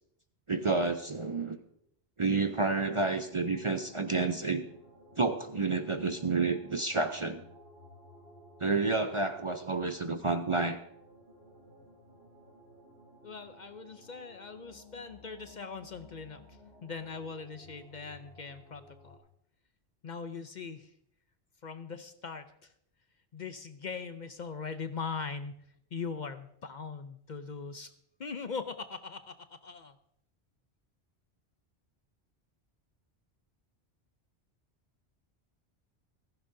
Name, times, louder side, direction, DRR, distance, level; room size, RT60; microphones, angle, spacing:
voice 1, 0.5-1.6 2.2-4.6 5.2-7.4 8.6-10.8, right 3 dB, 35° right, 7 dB, 0.6 m, -30 dB
sound 1, 3.2-19.2, equal, 85° left, 3.5 m, -56 dB
voice 2, 13.2-19.2 20.0-20.9 21.6-22.7 23.3-25.6 25.9-27.9 28.2-30.0, left 5 dB, 50° left, 10 dB, 0.7 m, -41 dB
15.5 x 15.0 x 2.7 m, 0.72 s
omnidirectional pair, 1.1 m